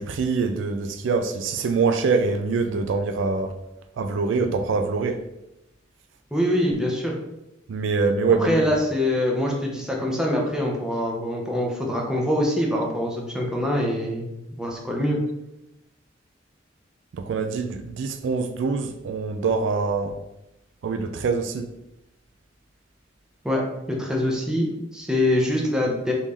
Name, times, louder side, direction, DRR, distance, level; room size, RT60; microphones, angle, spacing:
voice 1, 0.0-3.5 4.0-5.2 7.7-8.6 17.1-20.1 20.8-21.7, right 4 dB, 80° right, 0.3 m, -24 dB
voice 2, 6.3-7.1 8.4-15.2 23.4-26.1, left 1 dB, 5° right, 0.6 m, -24 dB
3.1 x 2.6 x 3.6 m
head